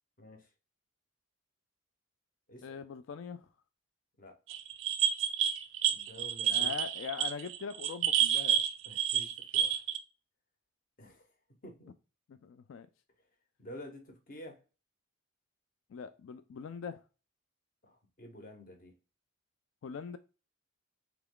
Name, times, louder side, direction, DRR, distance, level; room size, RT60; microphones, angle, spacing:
voice 1, 0.2-0.5 2.5-2.8 4.2-4.4 5.9-6.7 8.8-9.8 11.0-11.3 11.6-11.9 13.6-14.6 17.8-18.9, equal, 40° left, 0.9 m, -50 dB
voice 2, 2.6-3.5 6.5-8.6 12.3-12.9 15.9-17.0 19.8-20.2, left 6 dB, 65° left, 0.3 m, -42 dB
sound 1, 4.5-10.0, right 9 dB, 65° right, 0.4 m, -29 dB
3.4 x 3.0 x 3.6 m
head